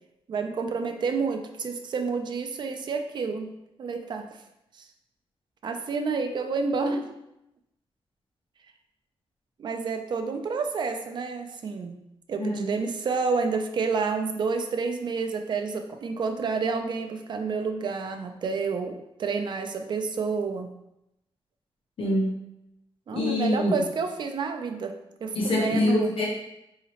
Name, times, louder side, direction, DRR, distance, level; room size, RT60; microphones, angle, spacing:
voice 1, 0.3-3.5 3.8-4.2 5.6-7.1 9.6-11.9 12.3-20.7 23.1-26.1, right 4 dB, 50° right, 6 dB, 0.4 m, -29 dB
voice 2, 12.4-12.7 22.0-22.3 23.1-23.8 25.3-26.3, left 1 dB, 65° left, -4 dB, 0.9 m, -24 dB
4.0 x 2.8 x 2.8 m, 0.87 s
wide cardioid pair, 175°, 10 cm